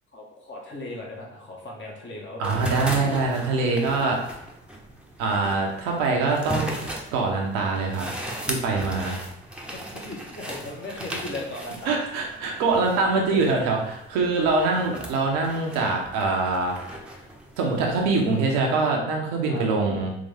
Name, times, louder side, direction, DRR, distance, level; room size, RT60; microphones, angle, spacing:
voice 1, 0.1-2.7 9.1-9.2 9.7-12.0 13.1-13.4 19.5-19.6, left 2 dB, 35° left, -2 dB, 1.3 m, -37 dB
sound 1, 2.4-18.5, right 1 dB, 5° right, 0.9 m, -37 dB
voice 2, 2.4-4.2 5.2-6.7 7.1-8.1 8.5-9.2 11.9-16.8 17.6-20.2, right 3 dB, 75° right, 0 dB, 1.0 m, -24 dB
3.8 x 3.5 x 3.4 m, 0.81 s
hypercardioid pair, 45°, 34 cm